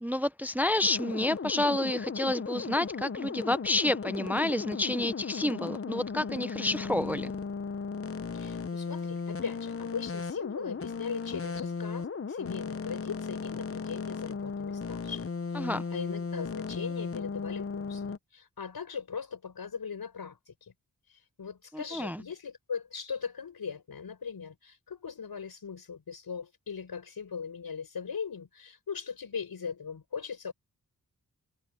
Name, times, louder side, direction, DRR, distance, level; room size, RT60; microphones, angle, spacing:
voice 1, 0.0-7.3 15.5-15.8 21.7-22.2, left 1 dB, 5° right, 0.5 m, -29 dB
sound 1, 0.8-18.2, left 5 dB, 40° left, 0.8 m, -36 dB
voice 2, 8.3-15.2 15.5-20.5 21.4-30.5, left 6 dB, 80° left, 5.6 m, -39 dB
wide cardioid pair, 75°, 36 cm